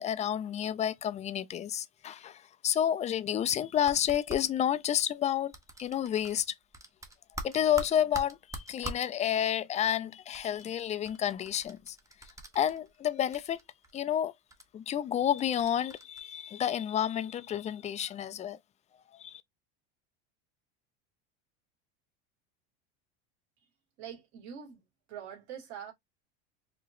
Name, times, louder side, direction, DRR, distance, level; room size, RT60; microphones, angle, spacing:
voice 1, 0.0-5.5 5.8-6.5 7.4-12.0 12.5-13.6 13.9-14.3 14.7-18.6 19.2-19.4, left 10 dB, 20° left, 0.4 m, -30 dB
sound 1, 3.7-4.4 5.5-6.4 6.7-9.1 10.3-13.1 13.3-14.0 14.5-14.6 15.3-16.2, right 1 dB, 10° right, 0.9 m, -43 dB
voice 2, 24.0-24.8 25.1-25.9, right 8 dB, 55° right, 2.3 m, -44 dB
4.7 x 2.9 x 2.5 m
supercardioid pair, 115°, 33 cm